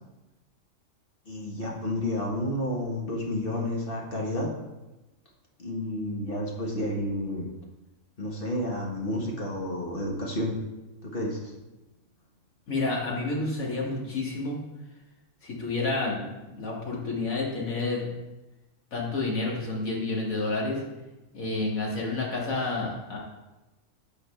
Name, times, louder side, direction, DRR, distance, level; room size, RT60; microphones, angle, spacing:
voice 1, 1.2-4.5 5.6-7.5 8.2-10.5 11.0-11.6, left 1 dB, 45° left, -2 dB, 1.6 m, -30 dB
voice 2, 12.7-14.6 15.4-16.2 16.5-18.1 18.9-20.8 21.3-23.2, left 3 dB, 90° left, -3 dB, 2.3 m, -29 dB
13.0 x 4.8 x 3.3 m, 1.0 s
omnidirectional pair, 1.4 m